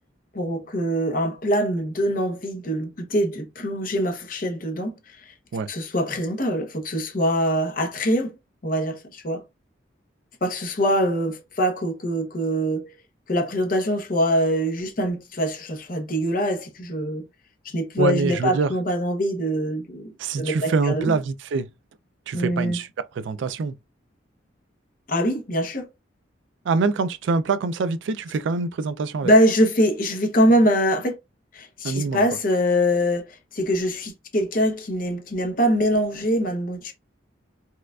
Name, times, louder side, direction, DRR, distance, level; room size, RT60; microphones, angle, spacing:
voice 1, 0.3-4.9 5.3-5.4 5.7-8.3 8.6-9.4 10.4-12.9 13.3-17.2 17.6-21.2 22.3-22.8 25.1-25.9 29.2-31.2 31.5-36.9, equal, 45° left, 0.8 m, -23 dB
voice 2, 18.0-18.7 20.2-21.7 22.3-22.9 23.1-23.8 26.7-29.3 31.8-32.2, right 4 dB, 75° right, 0.3 m, -24 dB
4.3 x 2.4 x 2.3 m
head